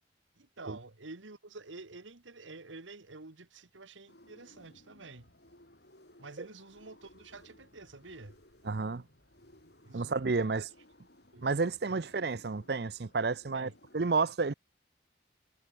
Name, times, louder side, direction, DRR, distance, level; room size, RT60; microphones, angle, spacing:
voice 1, 0.4-5.3 6.2-8.4 9.8-10.7 11.3-11.5 11.9-12.1 13.5-13.8, right 3 dB, 90° right, 1.8 m, -49 dB
sound 1, 4.1-14.0, left 1 dB, 60° left, 6.7 m, -61 dB
voice 2, 8.7-9.0 9.9-10.6 11.4-13.7 13.9-14.5, right 4 dB, 55° right, 0.6 m, -30 dB
head